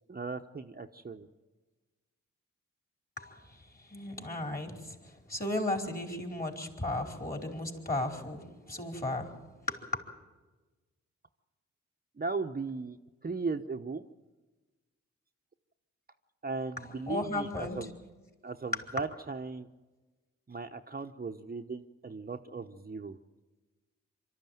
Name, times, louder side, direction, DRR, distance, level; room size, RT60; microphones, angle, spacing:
voice 1, 0.1-1.3 12.2-13.0 13.2-14.0 16.4-17.9 18.4-19.7 20.5-23.2, right 4 dB, 30° right, 5 dB, 0.9 m, -37 dB
voice 2, 3.9-9.4 9.7-10.0 16.8-17.8, left 2 dB, 30° left, 2 dB, 4.6 m, -35 dB
24.0 x 13.0 x 9.3 m, 1.2 s
supercardioid pair, 45°, 31 cm